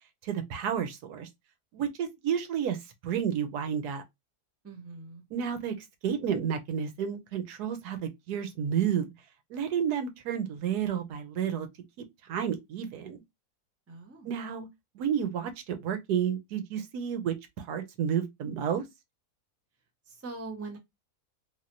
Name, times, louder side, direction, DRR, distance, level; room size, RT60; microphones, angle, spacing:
voice 1, 0.2-1.3 1.7-2.8 3.0-4.0 5.3-5.7 6.0-9.1 9.5-11.7 12.3-13.2 14.3-14.7 15.0-17.3 17.7-18.8, right 8 dB, 90° right, 1.3 m, -31 dB
voice 2, 4.6-5.2 13.9-14.3 20.1-20.8, right 3 dB, 15° right, 0.6 m, -42 dB
3.5 x 2.6 x 2.5 m
omnidirectional pair, 1.7 m